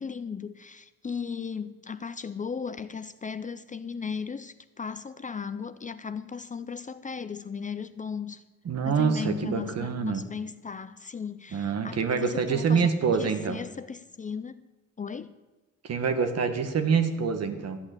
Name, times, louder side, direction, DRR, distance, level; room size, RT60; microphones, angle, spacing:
voice 1, 0.0-8.4 8.9-12.9 13.2-14.6 15.0-15.3, left 6 dB, 25° left, 0.6 m, -36 dB
voice 2, 8.6-10.2 11.5-13.6 15.8-17.8, right 6 dB, 55° right, 1.6 m, -26 dB
13.0 x 8.6 x 8.4 m
cardioid pair, 90°, 30 cm